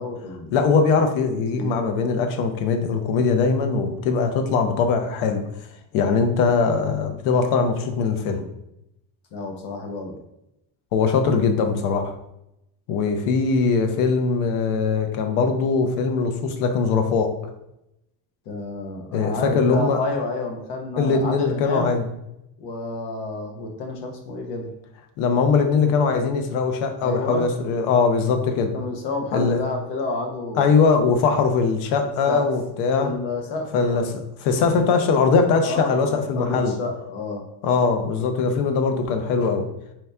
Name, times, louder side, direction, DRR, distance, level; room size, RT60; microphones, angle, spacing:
voice 1, 0.0-0.6 1.3-1.7 9.3-10.2 18.5-22.0 22.6-24.7 27.0-27.5 28.7-30.7 32.3-32.4 33.0-34.2 35.7-37.4 39.4-39.5, left 2 dB, 55° left, 3 dB, 1.1 m, -30 dB
voice 2, 0.5-5.4 5.9-8.4 10.9-12.1 12.9-17.3 19.1-20.0 21.0-22.1 25.2-28.7 29.3-29.6 30.6-33.1 33.7-34.0 34.4-36.8 37.6-39.7, left 5 dB, 80° left, 6 dB, 0.8 m, -21 dB
4.6 x 2.9 x 3.4 m, 0.85 s
cardioid pair, 140°, 49 cm